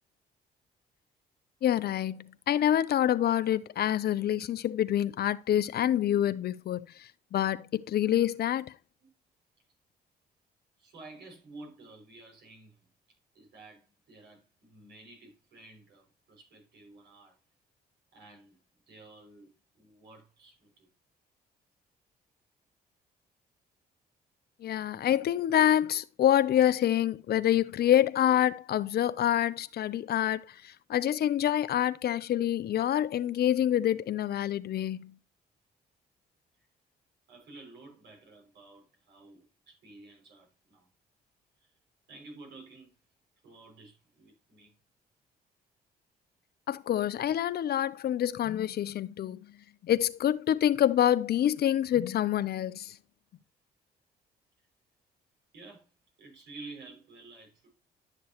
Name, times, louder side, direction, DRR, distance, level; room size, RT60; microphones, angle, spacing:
voice 1, 1.6-8.7 24.6-35.1 46.7-49.4 49.8-52.9, left 11 dB, 60° left, 0.6 m, -27 dB
voice 2, 10.8-12.9 13.3-17.4 18.1-18.6 18.9-20.9 37.3-40.9 41.6-41.7 42.1-42.9 43.4-44.8 55.5-55.9 56.2-57.7, right 3 dB, 70° right, 6.1 m, -51 dB
11.5 x 6.8 x 3.0 m
supercardioid pair, 70°, 18 cm